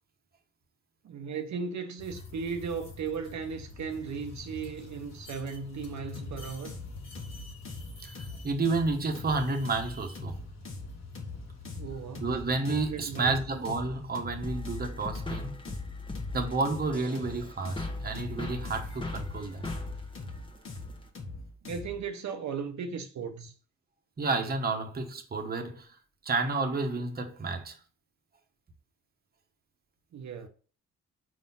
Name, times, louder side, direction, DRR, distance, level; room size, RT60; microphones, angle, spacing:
voice 1, 1.0-6.7 11.7-12.3 12.9-13.4 21.6-23.5 30.1-30.5, right 5 dB, 70° right, 0.7 m, -36 dB
sound 1, 2.0-16.0 17.8-20.1, left 3 dB, 60° left, 1.5 m, -48 dB
sound 2, 6.2-22.1, left 2 dB, 45° left, 1.4 m, -42 dB
voice 2, 8.0-10.4 12.2-15.6 16.3-19.6 24.2-26.0 26.2-27.8, right 3 dB, 30° right, 1.0 m, -30 dB
sound 3, 14.4-21.1, left 2 dB, 15° left, 1.0 m, -39 dB
5.2 x 4.1 x 5.4 m
wide cardioid pair, 150°, 30 cm